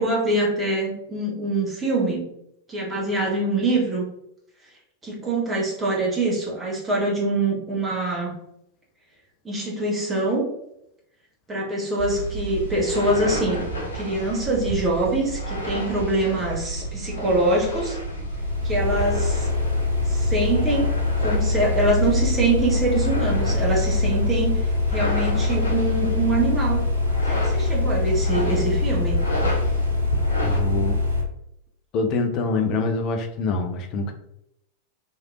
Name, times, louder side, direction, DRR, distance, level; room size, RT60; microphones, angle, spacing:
voice 1, 0.0-2.2 2.7-4.0 5.0-8.3 9.4-10.5 11.5-13.6 13.9-18.0 18.6-19.5 20.0-20.9 21.2-26.8 27.3-29.2, right 2 dB, 15° right, -4 dB, 1.2 m, -24 dB
sound 1, 12.0-30.6, right 2 dB, 75° left, 0.7 m, -31 dB
sound 2, 18.2-31.2, left 3 dB, 80° right, 0.9 m, -23 dB
voice 2, 30.4-31.0 31.9-34.1, left 3 dB, 40° left, 5 dB, 0.5 m, -25 dB
3.1 x 2.8 x 2.4 m, 0.78 s
figure-of-eight pair, 90°, 0 cm